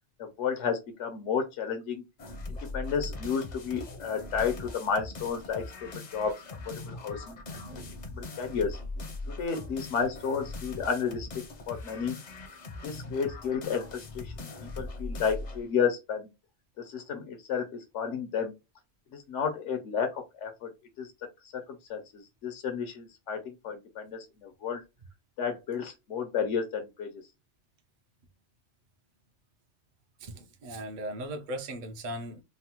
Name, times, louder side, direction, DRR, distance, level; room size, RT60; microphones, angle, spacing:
voice 1, 0.2-2.0 2.5-5.6 5.9-7.6 8.1-8.8 9.4-11.3 11.7-12.2 12.8-14.5 14.8-16.3 16.8-18.5 19.1-20.7 21.0-21.1 21.5-21.6 21.9-22.0 22.4-24.8 25.4-27.1, left 6 dB, 85° left, 1.0 m, -32 dB
sound 1, 2.2-15.7, left 2 dB, 50° left, 0.6 m, -41 dB
voice 2, 7.4-8.1 30.2-32.4, right 1 dB, 55° right, 0.6 m, -39 dB
3.2 x 2.0 x 2.8 m
omnidirectional pair, 1.2 m